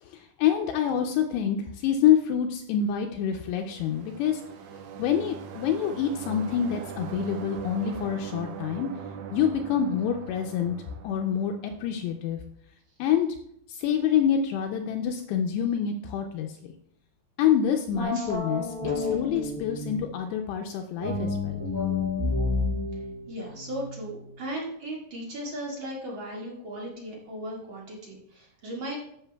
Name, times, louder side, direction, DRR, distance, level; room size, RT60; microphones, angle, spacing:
voice 1, 0.0-4.4 5.0-8.9 9.3-10.8 11.0-12.4 13.0-13.3 13.7-16.7 17.4-21.6, left 8 dB, 80° left, 4 dB, 2.6 m, -26 dB
sound 1, 3.3-12.0, right 7 dB, 85° right, 3.1 m, -41 dB
sound 2, 17.9-20.2 21.0-24.3, left 3 dB, 70° right, 0.3 m, -30 dB
voice 2, 22.9-29.0, right 1 dB, 45° right, -4 dB, 1.6 m, -37 dB
13.0 x 7.5 x 2.2 m, 0.71 s
omnidirectional pair, 5.1 m